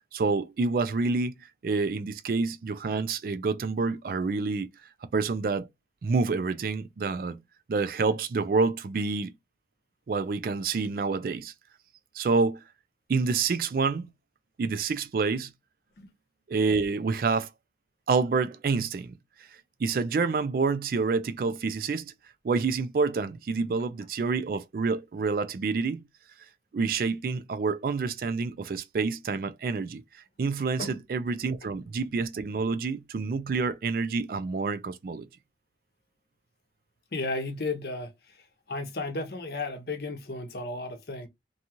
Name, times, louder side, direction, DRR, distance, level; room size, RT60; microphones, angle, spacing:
voice 1, 0.1-1.3 1.6-4.7 5.1-5.7 6.0-7.4 7.7-9.3 10.1-11.5 12.1-12.6 13.1-14.1 14.6-15.5 16.5-17.5 18.1-19.2 19.8-22.1 22.4-26.0 26.7-30.0 30.4-35.3, right 4 dB, 50° right, 0.3 m, -28 dB
voice 2, 37.1-38.4 38.7-41.3, left 3 dB, 60° left, 0.7 m, -34 dB
2.6 x 2.3 x 2.8 m
head